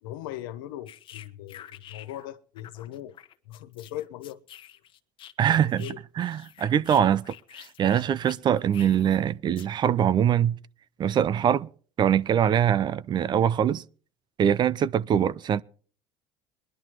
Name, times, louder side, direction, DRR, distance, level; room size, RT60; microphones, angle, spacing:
voice 1, 0.0-3.1 3.5-4.4 5.5-6.0, left 13 dB, 90° left, 1.0 m, -39 dB
sound 1, 0.9-2.3 2.6-5.9 6.2-9.2 9.6-9.8, left 11 dB, 50° left, 1.2 m, -48 dB
voice 2, 5.4-5.9 6.2-10.6 11.0-11.7 12.0-13.8 14.4-15.6, right 9 dB, 45° right, 0.6 m, -23 dB
22.0 x 11.5 x 3.0 m
supercardioid pair, 90°, 11 cm